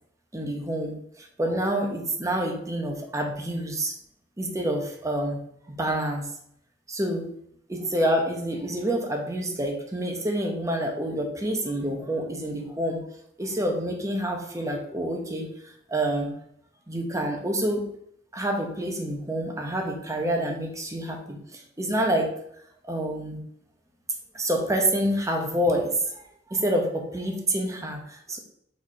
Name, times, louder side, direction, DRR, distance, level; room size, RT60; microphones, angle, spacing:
voice 1, 0.3-3.9 4.4-5.4 5.7-6.3 6.9-7.3 7.7-13.0 13.4-16.3 16.9-17.9 18.3-22.3 22.8-23.4 24.3-26.2 26.5-28.4, right 1 dB, 15° right, 2 dB, 0.9 m, -27 dB
4.7 x 4.2 x 4.7 m, 0.69 s
head